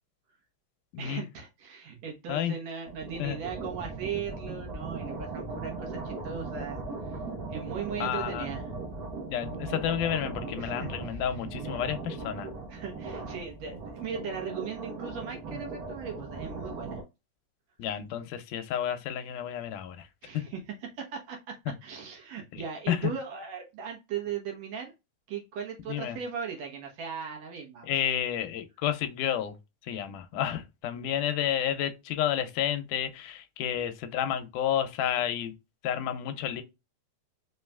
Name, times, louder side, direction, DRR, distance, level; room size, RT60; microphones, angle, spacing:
voice 1, 1.0-7.2 7.5-8.8 10.6-11.2 11.7-11.8 12.7-17.0 20.2-20.6 21.0-21.6 21.8-24.9 25.3-27.9 30.9-31.1, right 7 dB, 65° right, 2.1 m, -38 dB
sound 1, 2.8-17.0, right 3 dB, 90° right, 0.8 m, -38 dB
voice 2, 8.0-8.5 9.3-12.5 17.8-20.1 22.5-23.1 25.9-26.2 27.8-29.5 29.8-35.5 35.8-36.6, left 10 dB, 85° left, 2.2 m, -31 dB
5.3 x 3.1 x 2.3 m
omnidirectional pair, 3.6 m